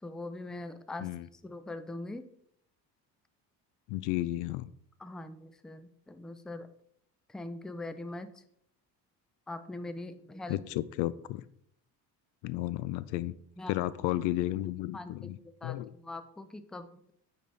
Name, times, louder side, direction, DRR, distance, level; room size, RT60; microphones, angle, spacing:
voice 1, 0.0-2.2 5.0-6.7 7.3-8.4 9.5-10.6 13.6-13.8 14.9-15.3 15.6-16.9, left 2 dB, ahead, 10 dB, 0.5 m, -42 dB
voice 2, 3.9-4.7 10.5-11.4 12.4-13.3 13.7-15.4 15.6-15.9, left 15 dB, 60° left, 17 dB, 0.5 m, -33 dB
8.9 x 4.3 x 3.3 m, 0.67 s
hypercardioid pair, 70°, 49 cm